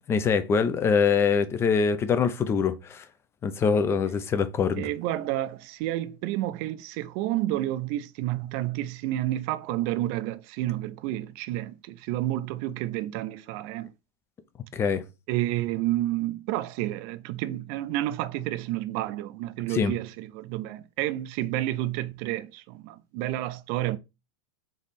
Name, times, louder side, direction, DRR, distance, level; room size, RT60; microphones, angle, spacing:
voice 1, 0.0-3.0 3.4-4.9 14.7-15.0 19.7-19.9, left 6 dB, 20° left, 0.5 m, -24 dB
voice 2, 4.7-13.9 15.3-24.0, right 15 dB, 45° right, 0.4 m, -30 dB
3.5 x 3.1 x 4.0 m
supercardioid pair, 135°, 13 cm